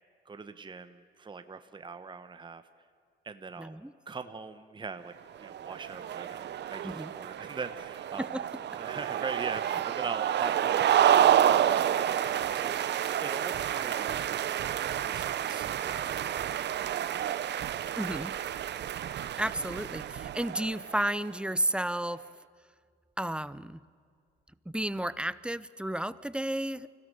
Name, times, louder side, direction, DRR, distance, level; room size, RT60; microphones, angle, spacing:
voice 1, 0.2-2.6 3.2-3.8 4.1-8.3 8.7-17.3, right 4 dB, 25° right, 10 dB, 1.0 m, -42 dB
voice 2, 3.6-3.9 6.8-7.1 8.2-8.4 18.0-18.3 19.4-22.2 23.2-23.8 24.7-26.9, right 1 dB, 5° right, 17 dB, 0.6 m, -32 dB
sound 1, 5.4-21.1, right 10 dB, 60° right, 0.7 m, -29 dB
25.0 x 16.5 x 6.8 m, 2.2 s
cardioid pair, 90°, 20 cm